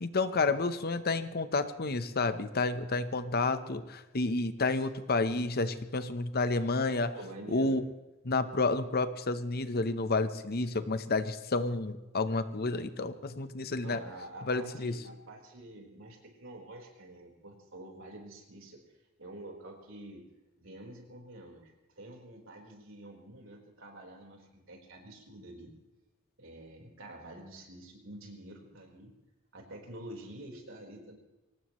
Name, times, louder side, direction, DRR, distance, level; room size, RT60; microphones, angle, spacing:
voice 1, 0.0-7.1 7.5-7.8 8.2-14.0 14.5-15.0, left 3 dB, 50° left, 11 dB, 0.9 m, -30 dB
voice 2, 7.1-7.8 13.8-18.8 19.2-20.2 20.6-25.7 26.4-29.1 29.5-31.2, right 1 dB, 65° right, 0 dB, 4.2 m, -48 dB
23.5 x 19.0 x 3.1 m, 1.1 s
head